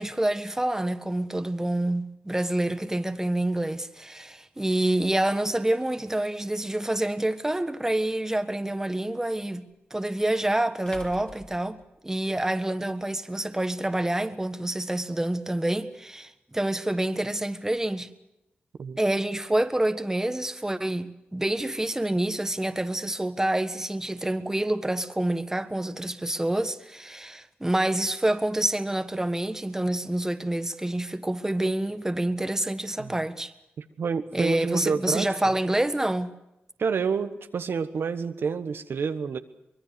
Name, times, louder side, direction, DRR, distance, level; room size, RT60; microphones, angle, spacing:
voice 1, 0.0-9.6 9.9-11.8 12.0-18.1 19.0-33.5 34.3-36.3, right 1 dB, 10° right, 1.5 m, -27 dB
sound 1, 7.0-7.1 9.7-9.8 10.9-12.5, left 1 dB, 25° left, 3.0 m, -46 dB
voice 2, 33.8-35.3 36.8-39.4, right 5 dB, 70° right, 1.3 m, -29 dB
24.5 x 21.5 x 6.9 m
cardioid pair, 65°, 4 cm